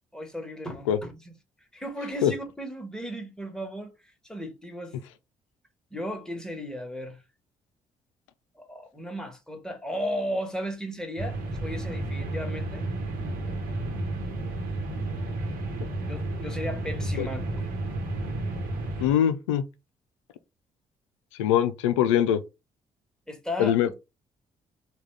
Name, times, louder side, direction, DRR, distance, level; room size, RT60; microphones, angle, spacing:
voice 1, 0.1-1.3 1.7-5.0 5.9-7.2 8.5-12.9 16.1-17.4 23.3-23.8, equal, 5° left, 1.2 m, -35 dB
sound 1, 11.2-19.1, right 2 dB, 65° right, 1.1 m, -32 dB
voice 2, 19.0-19.6 21.4-22.4 23.6-23.9, left 10 dB, 85° left, 0.4 m, -22 dB
3.5 x 2.4 x 3.2 m
hypercardioid pair, 45°, 16 cm